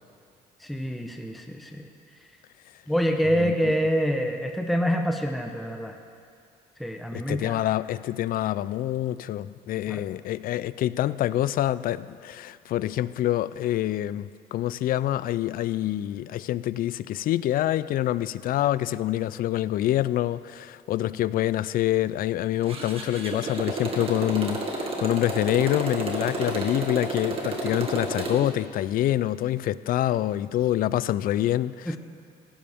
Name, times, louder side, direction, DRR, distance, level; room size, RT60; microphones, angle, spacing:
voice 1, 0.6-1.9 2.9-6.0 6.8-7.6 9.9-10.0 31.9-32.0, equal, ahead, 4 dB, 0.9 m, -26 dB
voice 2, 3.4-3.7 7.1-32.0, left 13 dB, 55° left, 17 dB, 0.4 m, -26 dB
Motorcycle, 22.6-28.5, right 2 dB, 35° right, 2.0 m, -31 dB
17.5 x 15.5 x 3.6 m, 2.3 s
cardioid pair, 110°, 17 cm